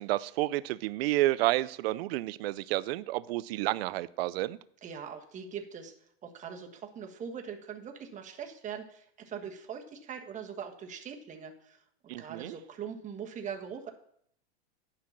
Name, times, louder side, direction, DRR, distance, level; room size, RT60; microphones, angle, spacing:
voice 1, 0.0-4.6 12.1-12.6, right 17 dB, 65° right, 17 dB, 0.6 m, -30 dB
voice 2, 4.8-5.9 6.2-13.9, right 7 dB, 20° right, 3 dB, 1.4 m, -42 dB
9.8 x 5.8 x 7.1 m, 0.67 s
supercardioid pair, 130°, 33 cm